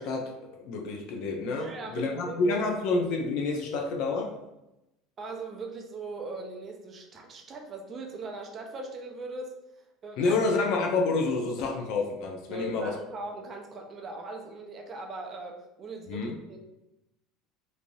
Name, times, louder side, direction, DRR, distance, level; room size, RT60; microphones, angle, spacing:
voice 1, 0.0-4.3 10.2-12.9 16.1-16.3, left 3 dB, 60° left, 2 dB, 0.5 m, -28 dB
voice 2, 1.6-2.6 5.2-9.5 10.0-10.4 12.5-16.6, right 3 dB, 25° right, 2 dB, 0.4 m, -39 dB
3.2 x 2.6 x 2.6 m, 0.92 s
cardioid pair, 155°, 0 cm